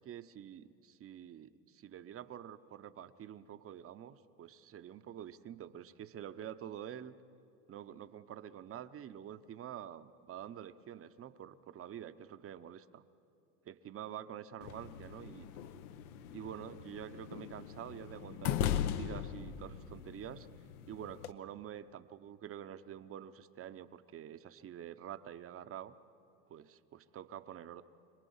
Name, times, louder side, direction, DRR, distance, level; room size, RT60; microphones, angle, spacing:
voice 1, 0.1-7.2 7.7-13.0 13.6-15.5 16.3-20.5 20.9-25.9 26.5-27.8, right 10 dB, 30° right, 12 dB, 0.8 m, -47 dB
sound 1, 14.6-21.3, left 9 dB, 70° left, 0.9 m, -39 dB
26.0 x 19.5 x 5.6 m, 2.6 s
hypercardioid pair, 90°, 45 cm